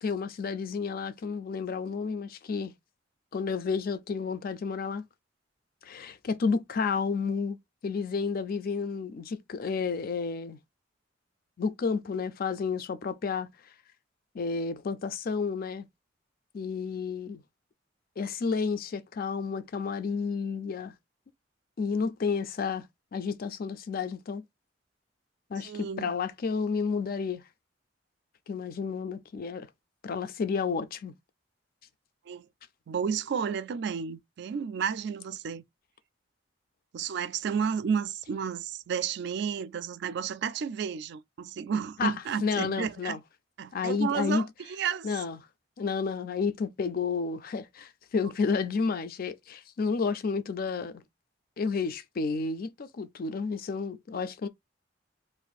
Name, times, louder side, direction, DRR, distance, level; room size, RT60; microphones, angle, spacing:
voice 1, 0.0-2.7 3.3-5.0 5.8-7.6 7.8-10.6 11.6-13.5 14.3-15.9 16.5-17.4 18.2-20.9 21.8-22.8 23.1-24.4 25.5-27.4 28.5-29.7 30.0-31.1 42.0-42.1 42.4-43.2 43.7-44.5 45.0-45.4 45.8-50.9 51.6-54.5, left 5 dB, 50° left, 0.4 m, -31 dB
voice 2, 25.6-26.1 32.3-32.5 32.9-35.6 36.9-43.2 43.6-45.2, right 7 dB, 65° right, 0.4 m, -32 dB
2.6 x 2.5 x 3.9 m
head